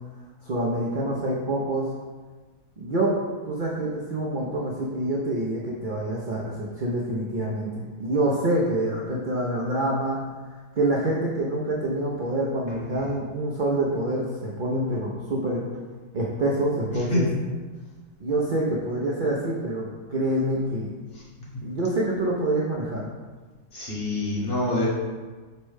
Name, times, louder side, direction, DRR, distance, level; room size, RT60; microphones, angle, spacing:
voice 1, 0.4-1.9 2.8-3.2 3.4-10.2 10.8-15.6 16.1-17.3 18.2-20.9 21.6-23.1, right 1 dB, 70° right, -4 dB, 0.4 m, -26 dB
voice 2, 23.7-24.9, left 1 dB, 45° left, -5 dB, 1.0 m, -25 dB
5.4 x 2.1 x 4.7 m, 1.4 s
omnidirectional pair, 1.6 m